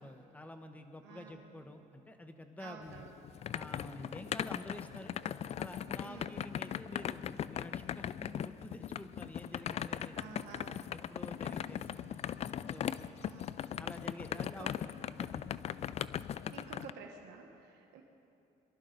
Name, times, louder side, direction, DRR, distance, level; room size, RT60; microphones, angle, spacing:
voice 1, 0.0-3.0 3.5-5.2 5.6-10.4 10.9-12.1 12.7-13.0 13.8-14.8 15.2-15.5, left 1 dB, 10° left, 6 dB, 1.0 m, -49 dB
voice 2, 1.0-1.4 2.6-3.1 6.0-6.4 10.1-10.9 13.2-13.5 14.6-14.7 16.5-18.0, right 6 dB, 90° right, 1 dB, 1.3 m, -51 dB
sound 1, 2.9-16.9, left 9 dB, 40° left, 0.3 m, -39 dB
23.0 x 12.0 x 3.9 m, 2.7 s
cardioid pair, 110°, 17 cm